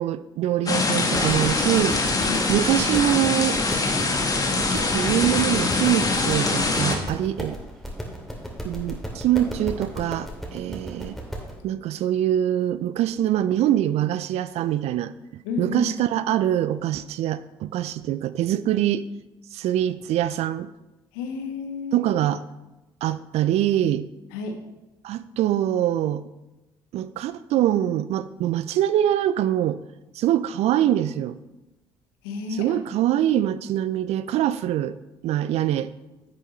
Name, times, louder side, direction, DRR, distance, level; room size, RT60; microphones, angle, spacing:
voice 1, 0.0-2.0 2.5-3.6 4.5-7.6 8.6-11.2 11.6-15.1 15.6-19.0 19.5-20.7 21.9-22.4 23.0-24.1 25.0-26.2 26.9-29.8 30.2-31.4 32.6-35.0 35.2-35.9, right 12 dB, 55° right, 15 dB, 0.4 m, -24 dB
sound 1, 0.7-7.0, left 3 dB, 30° left, 1.5 m, -23 dB
sound 2, 1.1-11.6, equal, ahead, 2.5 m, -35 dB
voice 2, 15.4-15.9 21.1-22.0 24.3-24.6 32.2-32.8, left 4 dB, 75° left, 5 dB, 1.1 m, -31 dB
10.0 x 8.1 x 3.2 m, 1.0 s
hypercardioid pair, 50°, 13 cm